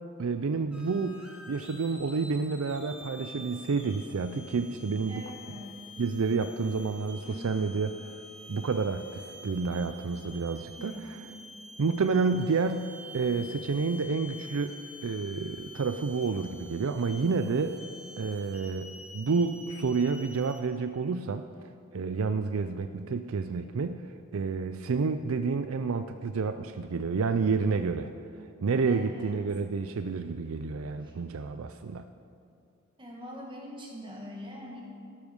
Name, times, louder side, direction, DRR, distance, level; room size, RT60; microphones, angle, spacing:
voice 1, 0.2-5.2 6.0-7.9 8.5-10.9 11.8-14.7 15.0-17.8 18.2-21.4 21.9-24.0 24.3-28.1 28.6-32.0, right 4 dB, 80° right, 9 dB, 0.5 m, -29 dB
sound 1, 0.7-20.6, left 1 dB, 5° right, 1.7 m, -48 dB
voice 2, 5.1-5.8 7.2-7.6 10.8-11.3 28.9-29.4 31.0-31.2 33.0-34.8, equal, 25° right, -2 dB, 2.0 m, -43 dB
13.5 x 12.0 x 5.4 m, 2.4 s
head